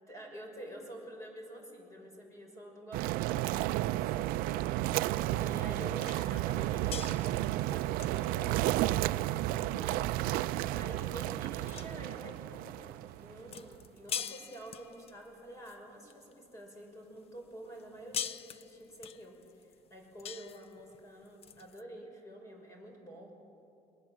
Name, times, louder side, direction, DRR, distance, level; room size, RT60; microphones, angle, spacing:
voice 1, 0.1-4.6 5.2-10.1 10.7-23.4, right 1 dB, 20° left, 2 dB, 5.7 m, -48 dB
sound 1, 2.9-13.8, right 15 dB, 85° right, 0.5 m, -32 dB
sound 2, 6.0-16.6 17.0-21.8, left 8 dB, 45° left, 0.7 m, -45 dB
26.5 x 21.5 x 7.5 m, 2.7 s
cardioid pair, 135°, 14 cm